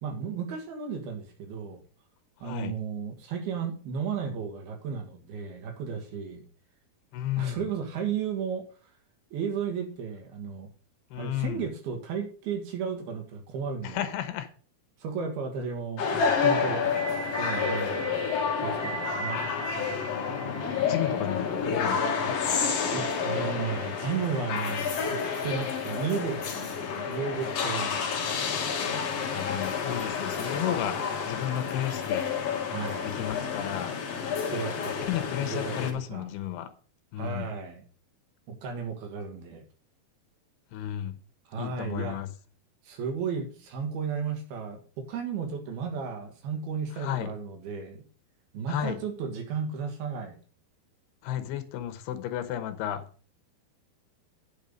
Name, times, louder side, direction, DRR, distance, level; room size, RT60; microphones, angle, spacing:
voice 1, 0.0-1.8 2.4-6.4 7.4-8.6 9.3-10.7 11.2-14.1 15.0-16.0 16.4-18.2 18.6-19.4 22.9-25.2 25.4-28.4 32.7-33.2 34.5-36.3 37.2-37.8 38.5-39.6 41.5-42.2 42.8-48.0 48.5-50.4, right 6 dB, 70° right, 3.5 m, -34 dB
voice 2, 2.4-2.7 7.1-7.6 11.1-11.6 13.8-14.5 20.9-22.3 29.3-32.3 33.0-33.9 35.1-36.7 37.1-37.5 40.7-41.1 41.6-42.3 46.9-47.3 48.7-49.0 51.2-53.0, left 11 dB, 80° left, 2.9 m, -33 dB
sound 1, 16.0-35.9, left 5 dB, 55° left, 1.9 m, -29 dB
9.0 x 7.1 x 5.2 m
omnidirectional pair, 4.6 m